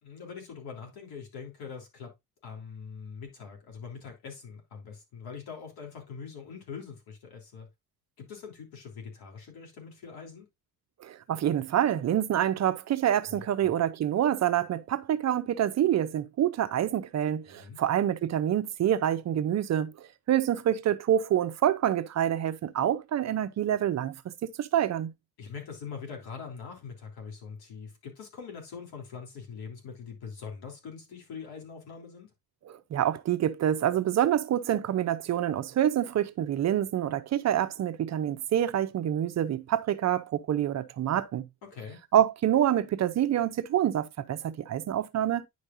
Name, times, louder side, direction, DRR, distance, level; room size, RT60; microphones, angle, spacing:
voice 1, 0.0-2.1 2.4-7.7 8.2-10.5 13.3-13.7 17.5-17.8 25.4-32.3 41.7-42.0, left 6 dB, 80° left, 3.5 m, -43 dB
voice 2, 11.0-25.1 32.7-41.5 42.1-45.4, right 11 dB, 45° right, 0.6 m, -27 dB
10.0 x 5.2 x 2.6 m
cardioid pair, 140°, 37 cm